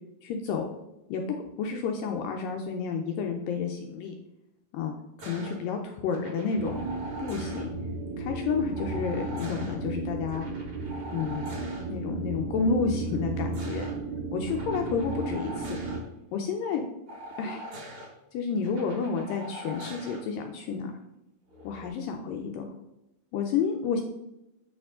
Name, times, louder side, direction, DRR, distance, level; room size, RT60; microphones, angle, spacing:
voice 1, 0.2-0.7 1.1-1.2 1.6-4.1 4.7-4.9 5.2-6.8 7.2-7.7 8.2-10.5 11.1-11.5 11.9-13.9 14.3-15.8 16.3-16.8 17.4-17.7 18.3-20.9 21.6-22.7 23.3-24.0, left 5 dB, 80° left, 3 dB, 2.0 m, -30 dB
sound 1, 5.2-5.6 6.1-7.7 8.7-9.8 10.3-11.8 13.1-13.9 14.5-16.0 17.1-18.1 18.6-20.2 21.5-21.9, right 1 dB, 60° right, 1.3 m, -43 dB
sound 2, 6.6-16.0, right 3 dB, 80° right, 2.3 m, -34 dB
8.7 x 4.8 x 3.6 m, 0.91 s
omnidirectional pair, 4.6 m